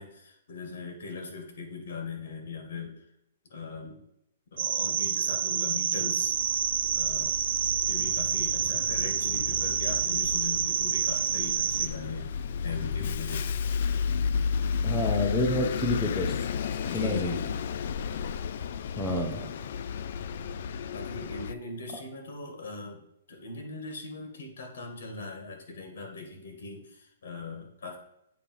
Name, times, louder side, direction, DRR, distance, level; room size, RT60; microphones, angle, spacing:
voice 1, 0.0-3.1 3.5-4.0 4.5-6.3 7.0-7.4 7.8-12.3 12.6-13.6 16.8-18.1 19.2-19.7 20.9-28.0, left 3 dB, 70° left, 3 dB, 1.9 m, -40 dB
sound 1, 4.6-11.9, right 8 dB, 60° right, 0.5 m, -28 dB
Bus, 6.2-21.5, left 6 dB, 55° left, 0.3 m, -33 dB
voice 2, 14.8-16.4 16.9-17.4 19.0-19.4, left 1 dB, 5° left, 0 dB, 0.7 m, -28 dB
8.4 x 2.9 x 5.4 m, 0.78 s
hypercardioid pair, 165°, 0 cm